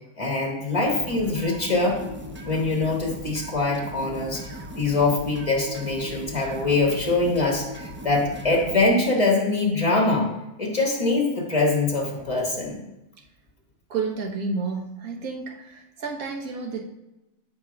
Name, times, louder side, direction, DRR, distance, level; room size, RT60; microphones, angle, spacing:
voice 1, 0.2-2.0 2.4-4.4 4.8-10.3 10.6-12.8, left 3 dB, 25° left, -1 dB, 1.9 m, -23 dB
sound 1, 0.9-8.9, equal, 15° right, 0.4 m, -38 dB
voice 2, 13.9-16.8, right 4 dB, 85° right, 1 dB, 1.6 m, -31 dB
13.5 x 5.9 x 2.4 m, 0.95 s
omnidirectional pair, 1.5 m